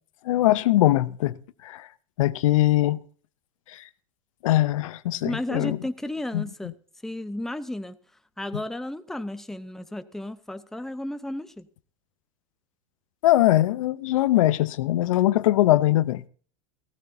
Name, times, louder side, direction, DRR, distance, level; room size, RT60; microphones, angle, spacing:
voice 1, 0.3-1.4 1.6-1.9 2.2-3.0 3.7-3.8 4.4-5.8 6.3-6.4 13.2-16.3, left 15 dB, 75° left, 0.6 m, -21 dB
voice 2, 5.2-6.8 7.0-8.0 8.4-11.7, left 1 dB, ahead, 0.7 m, -33 dB
15.5 x 15.0 x 2.7 m
hypercardioid pair, 110°, 17 cm